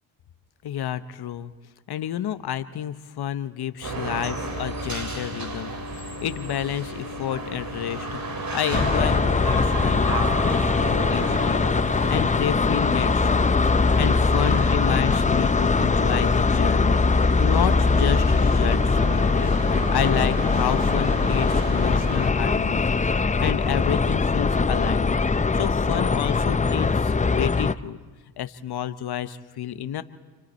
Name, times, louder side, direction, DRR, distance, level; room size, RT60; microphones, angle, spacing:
voice 1, 0.6-1.5 1.9-11.6 11.9-13.6 14.0-19.5 19.9-22.9 23.4-25.2 25.5-28.0 28.4-30.0, left 10 dB, 65° left, 12 dB, 1.0 m, -30 dB
sound 1, 3.8-22.3, right 2 dB, 55° right, 2.9 m, -33 dB
sound 2, 8.7-27.7, left 4 dB, 20° left, 0.6 m, -21 dB
29.0 x 25.5 x 4.4 m, 1.4 s
supercardioid pair, 55°, 42 cm